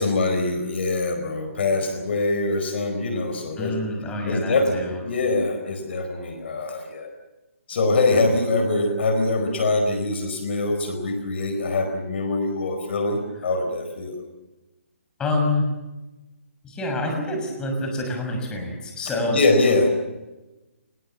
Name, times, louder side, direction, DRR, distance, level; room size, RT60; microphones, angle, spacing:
voice 1, 0.0-3.8 4.3-4.8 5.0-7.1 7.7-14.2 19.3-19.9, left 2 dB, 55° left, 7 dB, 4.5 m, -23 dB
voice 2, 3.6-5.0 8.2-8.3 15.2-15.7 16.6-19.4, left 2 dB, 10° left, 3 dB, 6.5 m, -27 dB
25.0 x 20.5 x 7.3 m, 1.1 s
figure-of-eight pair, 145°, 7 cm